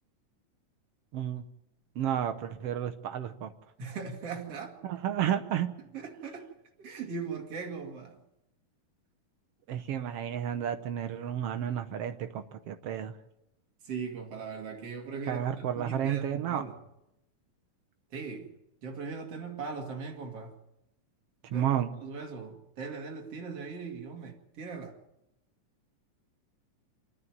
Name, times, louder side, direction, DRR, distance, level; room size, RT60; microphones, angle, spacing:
voice 1, 1.1-1.4 2.0-3.5 4.9-5.7 9.7-13.1 15.3-16.6 21.5-21.9, right 10 dB, 80° right, 1.3 m, -31 dB
voice 2, 3.8-4.8 5.9-8.2 13.8-16.8 18.1-18.5 18.8-20.6 21.5-21.7 22.0-25.0, right 5 dB, 50° right, 3.2 m, -39 dB
28.0 x 9.9 x 9.4 m
omnidirectional pair, 3.8 m